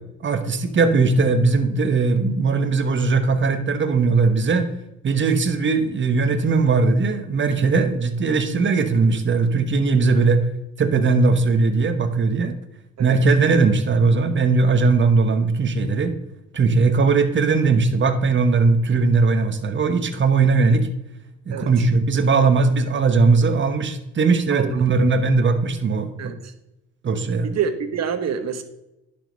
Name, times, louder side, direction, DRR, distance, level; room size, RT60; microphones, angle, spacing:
voice 1, 0.2-4.7 5.0-10.4 10.8-12.5 13.0-16.1 16.5-20.9 21.5-26.1 27.0-27.5, right 4 dB, 40° right, 8 dB, 1.2 m, -19 dB
voice 2, 26.2-26.5 27.4-28.6, right 7 dB, 60° right, 9 dB, 1.3 m, -26 dB
10.5 x 5.3 x 5.3 m, 0.92 s
cardioid pair, 90°, 30 cm